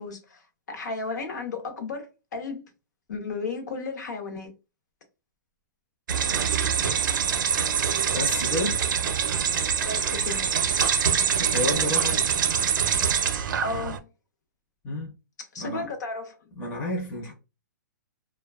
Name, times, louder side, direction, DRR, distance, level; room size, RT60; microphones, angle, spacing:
voice 1, 0.0-2.7 3.1-4.5 9.8-10.4 13.6-14.1 15.4-16.4, left 4 dB, 60° left, 0.7 m, -34 dB
sound 1, 6.1-14.0, right 7 dB, 70° right, 0.4 m, -24 dB
voice 2, 8.1-8.8 11.4-12.3 14.8-15.1 15.6-15.9 16.5-17.3, left 1 dB, 10° left, 0.5 m, -30 dB
2.5 x 2.1 x 2.2 m
hypercardioid pair, 175°, 11 cm